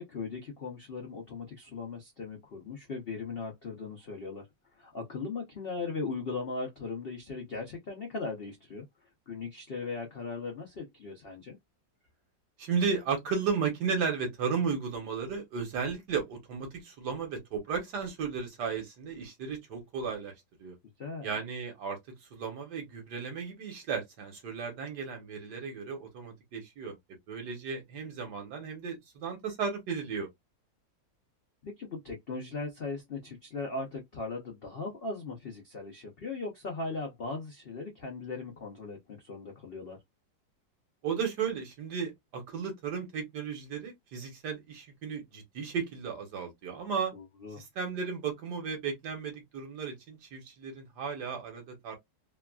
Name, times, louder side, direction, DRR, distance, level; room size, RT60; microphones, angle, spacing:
voice 1, 0.0-4.5 4.8-8.8 9.3-11.6 21.0-21.4 31.6-40.0 47.1-47.6, left 3 dB, 85° left, 0.5 m, -38 dB
voice 2, 12.6-20.3 20.6-20.8 21.2-22.0 22.3-27.0 27.3-30.3 41.0-47.1 47.6-52.0, right 6 dB, 65° right, 1.4 m, -34 dB
3.3 x 2.3 x 2.2 m
omnidirectional pair, 2.0 m